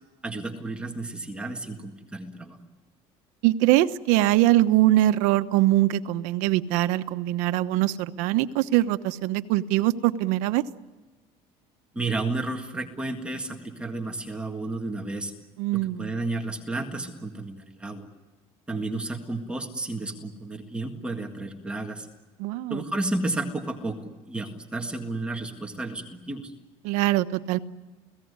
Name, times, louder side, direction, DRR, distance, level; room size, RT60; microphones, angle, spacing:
voice 1, 0.2-2.6 11.9-15.3 15.7-18.1 18.7-22.1 22.7-26.5, right 2 dB, 10° right, 3 dB, 1.8 m, -32 dB
voice 2, 3.4-10.6 15.6-16.1 22.4-22.8 26.8-27.6, right 15 dB, 75° right, 11 dB, 1.1 m, -22 dB
29.5 x 18.0 x 9.7 m, 1.2 s
cardioid pair, 170°, 13 cm